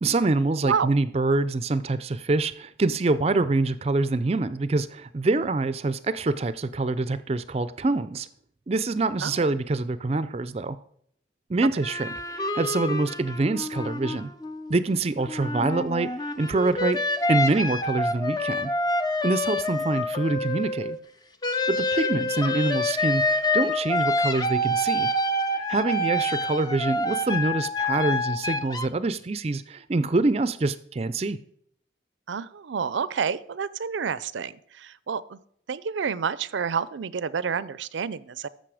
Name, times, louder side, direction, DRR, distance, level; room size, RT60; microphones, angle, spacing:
voice 1, 0.0-8.3 8.7-10.8 11.5-14.3 14.7-17.0 17.3-18.7 19.2-21.0 21.7-25.1 25.5-31.4, right 3 dB, 35° right, 14 dB, 0.4 m, -25 dB
sound 1, 11.8-14.8 15.2-21.0 21.4-28.9, left 1 dB, 20° left, 0.5 m, -27 dB
voice 2, 32.3-35.4 35.7-38.5, right 6 dB, 90° right, 18 dB, 0.5 m, -29 dB
13.5 x 6.6 x 4.9 m, 0.67 s
head